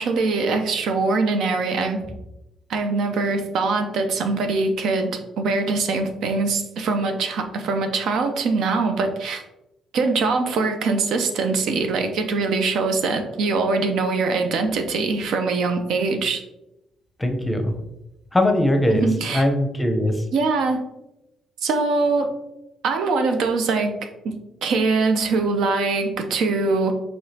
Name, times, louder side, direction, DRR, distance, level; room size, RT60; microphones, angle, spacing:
voice 1, 0.0-2.0 2.7-9.4 9.9-16.4 18.9-19.4 20.3-20.8 21.6-22.3 22.8-23.9 24.2-24.3 24.6-26.9, right 3 dB, 80° right, 6 dB, 0.5 m, -22 dB
voice 2, 17.2-17.7 18.3-20.2, left 1 dB, 10° left, 5 dB, 0.7 m, -21 dB
4.8 x 3.1 x 2.8 m, 0.91 s
cardioid pair, 90°, 0 cm